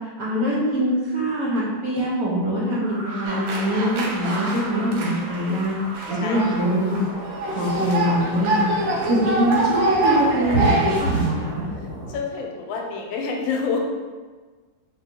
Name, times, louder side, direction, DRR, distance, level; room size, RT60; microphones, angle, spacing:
voice 1, 0.2-2.8 3.2-5.8 6.1-7.0 7.5-8.7 9.1-11.7, equal, 60° right, -6 dB, 1.0 m, -23 dB
sound 1, 0.7-0.8 1.2-1.3 3.2-3.4 4.2-8.5 9.7-9.8 10.3-11.4, right 3 dB, 25° right, 1.2 m, -32 dB
sound 2, 2.8-12.2, right 1 dB, 40° right, 0.9 m, -38 dB
sound 3, 3.2-11.0, right 2 dB, 80° right, 1.3 m, -25 dB
voice 2, 11.8-13.8, left 5 dB, 80° left, 1 dB, 1.4 m, -28 dB
4.2 x 3.1 x 2.7 m, 1.4 s
omnidirectional pair, 2.1 m